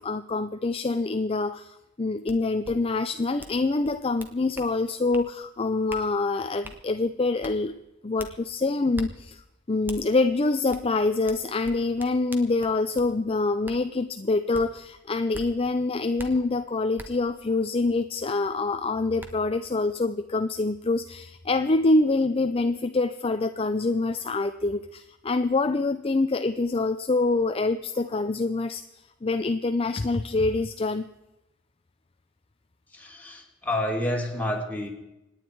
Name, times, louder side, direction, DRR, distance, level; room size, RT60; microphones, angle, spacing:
voice 1, 0.0-7.7 8.0-9.4 9.7-28.8 29.2-31.1, left 3 dB, 30° left, 9 dB, 0.5 m, -25 dB
sound 1, 2.3-2.4 2.6-2.7 3.4-3.6 3.8-4.7 5.1-5.3 5.9-6.0 6.6-6.8 7.4-7.5 8.2-8.3 8.9-9.1 9.9-10.0 10.7-10.8 11.3-13.1 13.6-13.8 14.5-14.6 15.3-15.5 16.2-16.3 17.0-17.1 18.6-18.7 19.2-19.3, right 1 dB, 10° right, 1.4 m, -41 dB
voice 2, 32.9-34.9, left 1 dB, 10° left, -1 dB, 3.1 m, -29 dB
26.5 x 9.8 x 4.6 m, 0.94 s
head